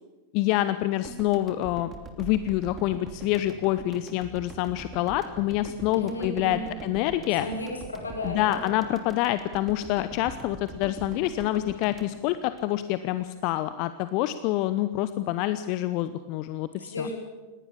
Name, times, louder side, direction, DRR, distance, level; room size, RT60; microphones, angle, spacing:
voice 1, 0.3-1.9 2.2-7.5 8.2-17.1, left 15 dB, 45° left, 13 dB, 0.8 m, -27 dB
sound 1, 1.0-13.2, right 4 dB, 20° right, 2.9 m, -43 dB
voice 2, 5.9-6.7 7.4-8.7 16.8-17.2, left 1 dB, 75° left, 2 dB, 5.2 m, -34 dB
20.5 x 18.0 x 8.6 m, 1.3 s
figure-of-eight pair, 90°, 0 cm